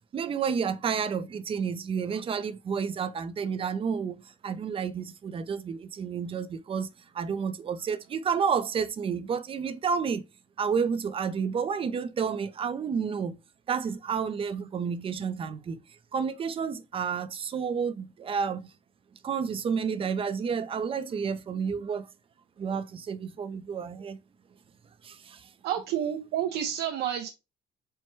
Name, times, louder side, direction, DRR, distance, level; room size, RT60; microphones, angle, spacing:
voice 1, 0.1-10.3 10.6-13.4 13.7-15.8 16.1-18.7 19.2-22.1 22.6-24.2 25.0-25.5, right 6 dB, 35° right, 0.5 m, -30 dB
voice 2, 25.6-27.3, right 10 dB, 85° right, 0.7 m, -29 dB
4.5 x 2.2 x 4.4 m
cardioid pair, 110°, 17 cm